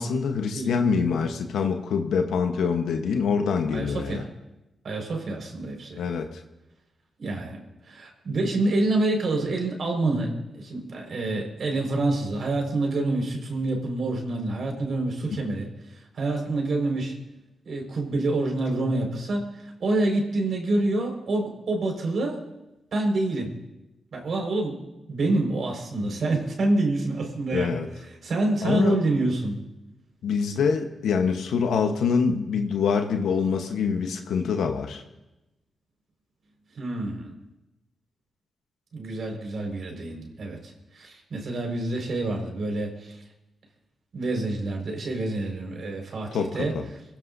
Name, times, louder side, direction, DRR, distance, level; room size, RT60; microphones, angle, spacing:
voice 1, 0.0-4.2 6.0-6.4 15.3-15.4 26.0-26.1 27.5-27.9 28.6-29.0 30.2-35.0 46.3-46.8, left 5 dB, 90° left, 5 dB, 1.1 m, -25 dB
voice 2, 3.7-4.3 4.8-6.0 7.2-7.6 7.9-15.7 16.1-17.1 17.6-22.4 22.9-23.5 24.1-24.8 25.1-27.8 28.2-29.6 36.7-37.3 38.9-43.2 44.1-46.8, right 2 dB, 65° right, 1 dB, 5.0 m, -27 dB
25.5 x 16.5 x 2.7 m, 0.96 s
cardioid pair, 70°, 0 cm